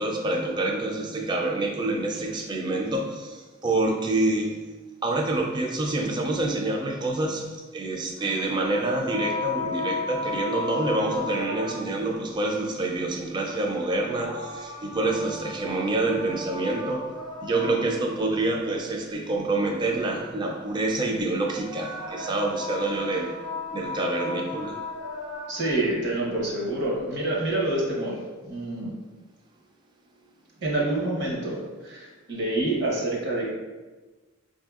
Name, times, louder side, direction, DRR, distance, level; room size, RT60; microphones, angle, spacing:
voice 1, 0.0-4.6 5.0-17.1 17.4-23.4 23.7-24.8, right 2 dB, 20° right, 1 dB, 0.3 m, -27 dB
sound 1, 8.2-12.1 13.7-18.2 21.4-25.8, left 3 dB, 75° right, 1.2 m, -35 dB
voice 2, 25.5-28.9 30.6-33.5, right 2 dB, 55° right, -3 dB, 0.8 m, -27 dB
3.8 x 2.6 x 2.3 m, 1.3 s
head